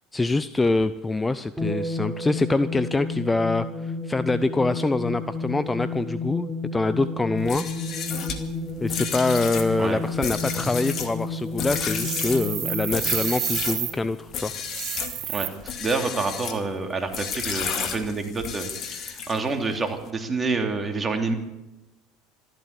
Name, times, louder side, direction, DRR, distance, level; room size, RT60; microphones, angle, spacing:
voice 1, 0.1-7.7 8.8-14.8, left 3 dB, 15° left, 13 dB, 0.6 m, -25 dB
sound 1, 1.6-14.4, left 2 dB, ahead, 6.4 m, -32 dB
sound 2, 7.4-13.8 14.3-15.2 15.6-16.6 17.1-19.5, left 6 dB, 50° left, 2.2 m, -32 dB
sound 3, 11.9-13.9 14.6-15.5, right 11 dB, 55° right, 1.6 m, -30 dB
voice 2, 15.3-21.3, right 3 dB, 25° right, 4 dB, 3.1 m, -28 dB
13.5 x 12.5 x 8.4 m, 0.98 s
hypercardioid pair, 75°, 0 cm